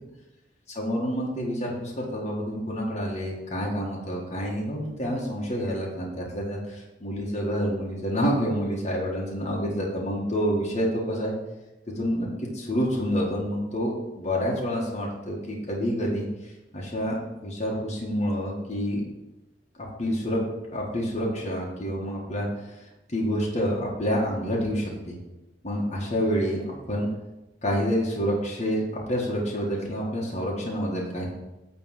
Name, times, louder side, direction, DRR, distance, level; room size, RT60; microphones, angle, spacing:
voice 1, 0.8-11.3 11.9-19.0 19.8-20.4 20.7-25.2 25.6-27.1 27.6-28.8 29.1-31.3, equal, 35° left, -3 dB, 1.4 m, -28 dB
9.1 x 3.4 x 6.4 m, 1.0 s
head